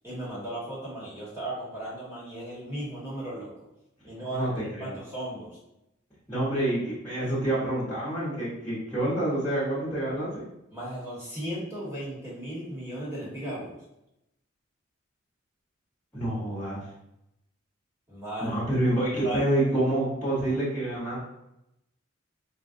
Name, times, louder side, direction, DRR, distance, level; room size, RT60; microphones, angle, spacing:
voice 1, 0.0-3.5 4.1-5.6 10.7-13.8 18.1-18.6 19.2-19.4, right 1 dB, 15° right, -7 dB, 1.2 m, -36 dB
voice 2, 4.3-5.0 6.3-10.4 16.1-16.9 18.4-21.2, right 1 dB, 10° left, -10 dB, 0.9 m, -27 dB
3.8 x 2.3 x 2.6 m, 0.86 s
head